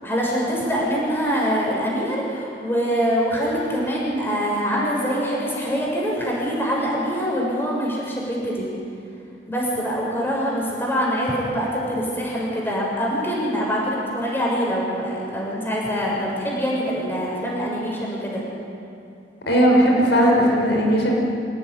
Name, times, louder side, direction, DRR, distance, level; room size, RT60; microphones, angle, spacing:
voice 1, 0.0-8.7 9.5-18.4, equal, 10° left, -4 dB, 7.0 m, -24 dB
voice 2, 19.5-21.2, equal, 70° left, -1 dB, 6.0 m, -17 dB
27.0 x 18.0 x 9.9 m, 2.5 s
head